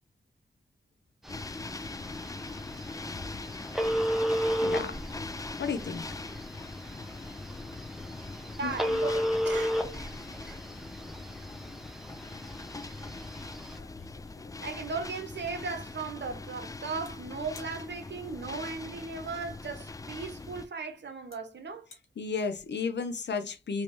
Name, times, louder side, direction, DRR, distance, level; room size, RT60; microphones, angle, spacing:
sound 1, 1.3-20.7, left 3 dB, 15° left, 0.3 m, -42 dB
Telephone, 1.3-13.8, equal, ahead, 0.8 m, -33 dB
voice 1, 4.6-4.9 5.6-6.0 8.6-8.7 22.2-23.8, left 5 dB, 60° left, 0.7 m, -32 dB
voice 2, 8.6-10.1 10.4-10.6 14.6-21.9, right 4 dB, 60° right, 1.0 m, -37 dB
sound 2, 13.7-15.0 17.0-17.1 17.5-17.8 19.6-19.7 20.6-20.7 21.3-21.4 21.7-22.1, left 4 dB, 85° left, 1.0 m, -54 dB
3.1 x 3.0 x 3.3 m
cardioid pair, 55°, 20 cm